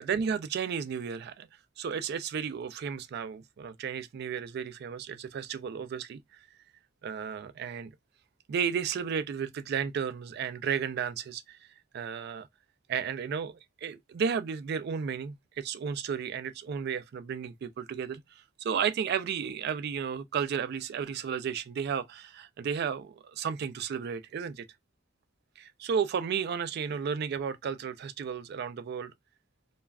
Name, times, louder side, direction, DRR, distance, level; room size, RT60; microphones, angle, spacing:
voice 1, 0.0-1.5 1.8-6.2 7.0-7.9 8.5-11.6 11.9-12.5 12.9-24.6 25.6-29.1, right 7 dB, 55° right, 0.3 m, -33 dB
2.3 x 2.0 x 3.3 m
head